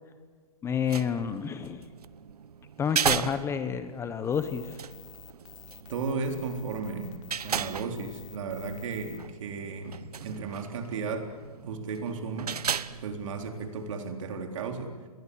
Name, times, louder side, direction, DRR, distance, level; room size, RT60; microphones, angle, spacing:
voice 1, 0.6-1.9 2.8-4.8, left 7 dB, 15° left, 11 dB, 1.1 m, -30 dB
sound 1, 0.6-14.1, right 7 dB, 85° right, 1.0 m, -36 dB
sound 2, 4.3-9.2, left 11 dB, 55° left, 2.1 m, -50 dB
voice 2, 5.9-11.4 11.6-12.6 12.9-15.0, right 4 dB, 55° right, 5 dB, 3.9 m, -34 dB
28.0 x 21.5 x 8.5 m, 1.5 s
hypercardioid pair, 145°, 19 cm